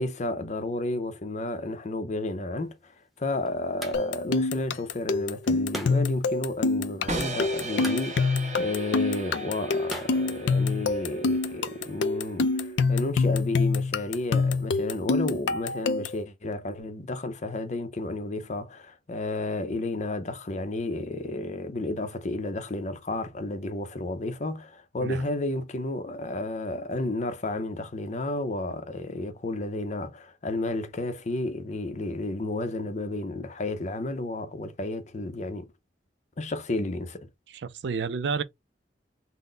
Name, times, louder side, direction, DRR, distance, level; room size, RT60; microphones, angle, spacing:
voice 1, 0.0-35.7 36.4-37.3, left 2 dB, 40° left, 0.6 m, -32 dB
sound 1, 2.6-11.1, equal, ahead, 0.9 m, -45 dB
sound 2, 3.9-16.2, left 3 dB, 85° left, 0.5 m, -26 dB
sound 3, 7.1-13.1, right 2 dB, 40° right, 1.1 m, -37 dB
voice 2, 37.5-38.4, right 5 dB, 70° right, 0.4 m, -30 dB
3.9 x 2.1 x 3.8 m
head